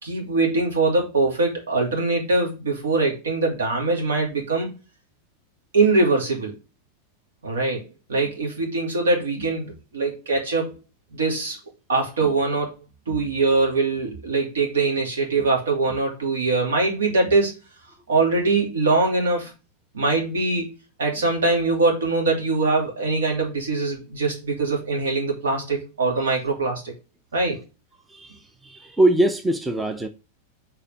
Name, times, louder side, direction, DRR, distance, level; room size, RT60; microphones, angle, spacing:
voice 1, 0.0-4.7 5.7-6.5 7.4-10.7 11.1-11.6 11.9-17.5 18.1-19.5 19.9-20.7 21.0-26.9 27.3-27.6, right 3 dB, 65° right, 2.5 m, -22 dB
voice 2, 28.1-30.1, right 1 dB, 10° right, 0.7 m, -22 dB
6.9 x 4.3 x 3.5 m
figure-of-eight pair, 90°, 0 cm